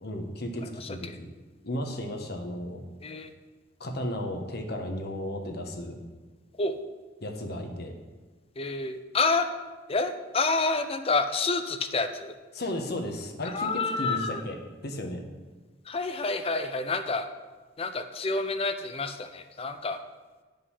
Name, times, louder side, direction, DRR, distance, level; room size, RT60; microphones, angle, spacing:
voice 1, 0.0-1.3 1.6-2.8 3.8-6.0 7.2-7.9 12.5-14.2 14.4-14.6 14.8-15.2, left 1 dB, 55° left, 4 dB, 1.1 m, -34 dB
voice 2, 0.7-1.2 3.0-3.3 6.6-6.8 8.6-9.5 9.9-12.3 13.4-14.4 15.9-17.3 17.8-20.0, left 3 dB, 30° left, 9 dB, 0.6 m, -29 dB
9.9 x 5.3 x 5.6 m, 1.3 s
head